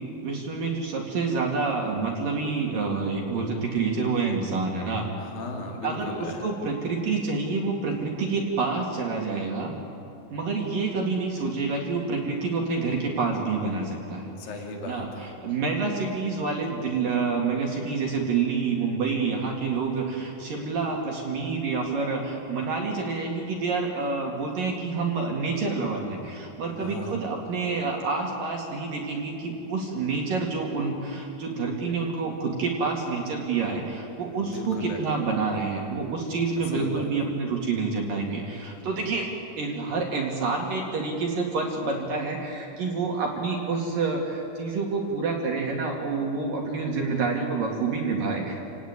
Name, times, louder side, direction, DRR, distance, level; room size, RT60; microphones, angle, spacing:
voice 1, 0.2-5.1 5.8-9.7 10.3-14.3 14.8-39.3 39.6-48.5, right 4 dB, 55° right, 0 dB, 3.5 m, -28 dB
voice 2, 5.2-6.5 14.4-15.3 26.8-27.2 34.5-35.0 36.7-37.3, left 2 dB, 55° left, 0 dB, 4.3 m, -36 dB
29.0 x 18.0 x 9.6 m, 2.9 s
omnidirectional pair, 5.3 m